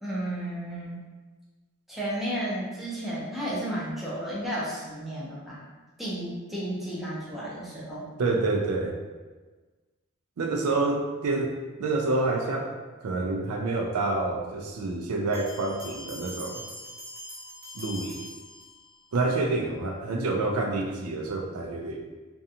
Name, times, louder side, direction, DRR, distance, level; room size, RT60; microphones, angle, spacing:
voice 1, 0.0-1.0 1.9-5.6 6.0-8.1, right 1 dB, ahead, -8 dB, 0.6 m, -33 dB
voice 2, 8.2-9.0 10.4-11.5 11.8-12.8 13.0-16.6 17.7-18.2 19.1-22.0, right 3 dB, 85° right, 1 dB, 0.4 m, -28 dB
sound 1, 15.3-19.1, left 1 dB, 40° right, 0.7 m, -42 dB
2.5 x 2.2 x 2.7 m, 1.3 s
head